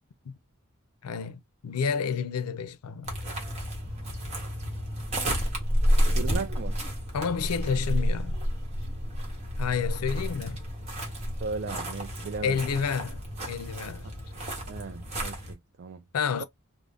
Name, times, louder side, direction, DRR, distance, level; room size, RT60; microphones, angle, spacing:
voice 1, 1.0-3.1 7.1-8.4 9.6-10.6 12.4-13.2 13.5-14.1 16.1-16.4, left 6 dB, 90° left, 0.4 m, -30 dB
sound 1, 3.0-15.5, equal, 30° right, 0.9 m, -30 dB
voice 2, 6.1-6.8 11.4-12.6 14.7-16.0, right 4 dB, 50° right, 0.3 m, -36 dB
2.4 x 2.0 x 3.4 m
head